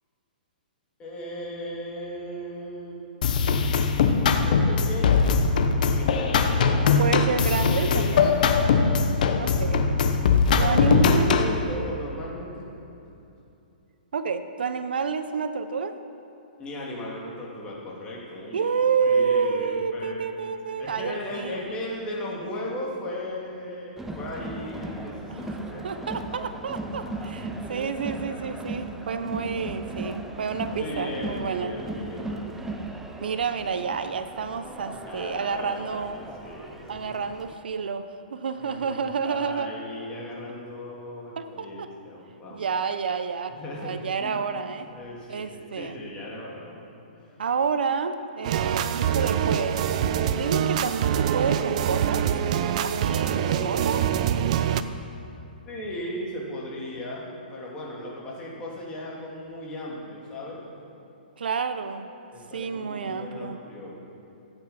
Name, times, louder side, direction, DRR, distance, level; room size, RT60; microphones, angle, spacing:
voice 1, 1.0-3.0 4.0-5.3 5.8-6.5 6.9-7.1 7.7-9.2 10.6-12.6 16.6-18.7 19.1-20.3 20.8-26.0 27.0-27.1 27.8-27.9 28.3-28.6 30.7-32.8 35.1-36.8 38.6-42.7 43.5-44.4 44.9-46.8 47.1-47.3 55.6-60.7 62.3-64.0, left 1 dB, 20° left, -4 dB, 2.6 m, -37 dB
sound 1, 3.2-11.6, left 5 dB, 55° left, 1.0 m, -21 dB
voice 2, 7.0-8.4 9.4-10.3 10.5-11.5 14.1-16.0 18.5-21.6 25.3-25.6 25.8-31.7 33.2-36.2 36.9-39.7 41.4-41.9 42.5-44.9 45.3-46.0 47.4-49.8 50.3-52.3 52.8-54.1 61.4-62.1 62.5-63.6, right 5 dB, 80° right, 10 dB, 0.8 m, -29 dB
Crowd, 24.0-37.5, right 2 dB, 5° right, 0.6 m, -37 dB
sound 2, 48.4-54.8, right 9 dB, 45° right, 0.6 m, -25 dB
13.5 x 9.1 x 5.8 m, 2.8 s
hypercardioid pair, 150°, 5 cm